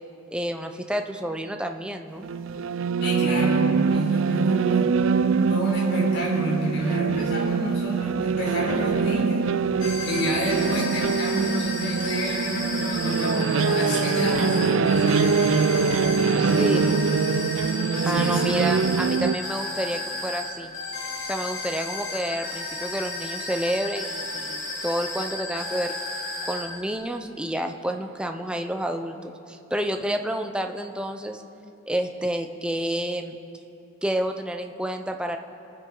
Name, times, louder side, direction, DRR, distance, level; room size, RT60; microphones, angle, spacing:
voice 1, 0.3-2.3 16.4-16.8 18.1-20.7 21.3-25.9 26.5-31.4 31.9-33.4 34.0-35.4, equal, 5° right, 5 dB, 0.6 m, -29 dB
sound 1, 2.2-19.4, right 5 dB, 70° right, 0.4 m, -23 dB
voice 2, 3.0-4.9 5.5-9.5 9.7-15.6 16.1-17.3 18.0-18.4 18.8-18.9, left 1 dB, 60° left, -4 dB, 4.0 m, -30 dB
sound 2, 9.8-27.0, left 3 dB, 75° left, 2.5 m, -33 dB
27.5 x 9.6 x 3.9 m, 2.8 s
head